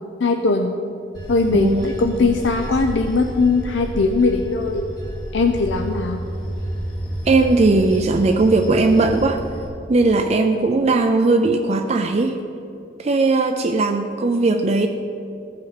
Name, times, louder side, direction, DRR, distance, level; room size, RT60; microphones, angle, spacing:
voice 1, 0.2-0.8 1.3-4.9 5.3-6.2, left 3 dB, 80° left, 5 dB, 0.5 m, -20 dB
Bell / Train, 1.1-9.7, equal, 25° left, 1.8 m, -31 dB
voice 2, 1.5-1.9 7.3-9.4 9.9-12.4 13.0-14.9, right 3 dB, 35° right, 5 dB, 0.4 m, -18 dB
15.0 x 5.3 x 4.1 m, 2.7 s
head